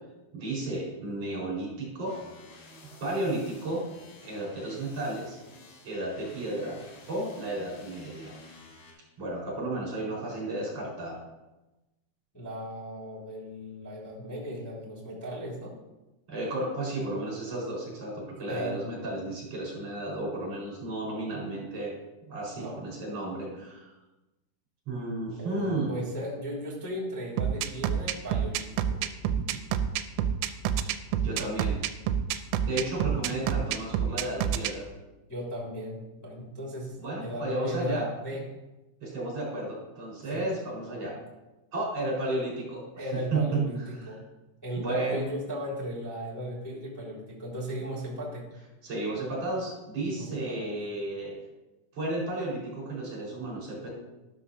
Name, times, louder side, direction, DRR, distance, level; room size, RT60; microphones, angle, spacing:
voice 1, 0.3-2.1 3.0-3.8 4.2-5.4 5.8-6.8 7.1-8.3 9.2-11.2 16.3-21.9 22.3-23.9 24.9-25.9 31.2-31.8 32.7-34.8 37.0-38.1 39.0-41.1 41.7-42.8 43.3-43.6 44.0-44.2 44.8-45.3 48.8-51.3 51.9-53.9, right 2 dB, 30° right, -5 dB, 5.4 m, -33 dB
sound 1, 2.1-8.9, left 3 dB, 70° left, 4.6 m, -52 dB
voice 2, 12.3-15.7 18.5-18.8 22.5-22.8 25.4-29.1 35.3-37.0 37.2-38.4 40.3-40.4 40.8-41.1 42.9-44.2 44.6-48.5 50.1-50.8, equal, 15° left, -4 dB, 0.7 m, -37 dB
sound 2, 27.4-34.7, right 9 dB, 85° right, 3.1 m, -27 dB
13.0 x 12.5 x 2.8 m, 1.0 s
omnidirectional pair, 5.9 m